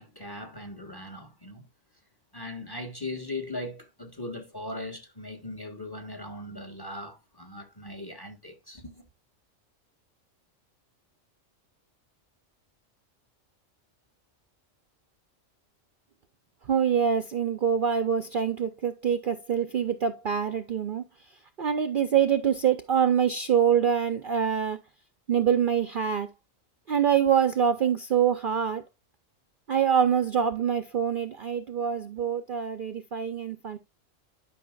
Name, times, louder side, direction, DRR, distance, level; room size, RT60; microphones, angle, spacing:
voice 1, 0.0-1.7 2.3-9.0, left 2 dB, 20° left, 1.4 m, -39 dB
voice 2, 16.7-21.0 21.6-24.8 25.3-26.3 26.9-28.8 29.7-33.8, right 8 dB, 50° right, 0.7 m, -25 dB
11.5 x 5.7 x 2.3 m
omnidirectional pair, 1.3 m